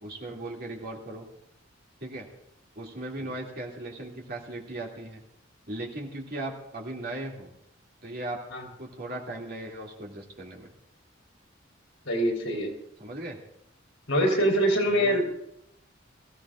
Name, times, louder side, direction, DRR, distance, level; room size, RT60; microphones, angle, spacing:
voice 1, 0.0-1.3 2.0-2.3 2.8-5.2 5.7-7.5 8.0-8.4 8.8-10.7 13.0-13.4 14.9-15.2, right 1 dB, 50° right, -1 dB, 2.5 m, -37 dB
voice 2, 12.1-12.7 14.1-15.2, equal, 75° left, -1 dB, 4.0 m, -24 dB
22.5 x 15.0 x 2.5 m, 0.80 s
head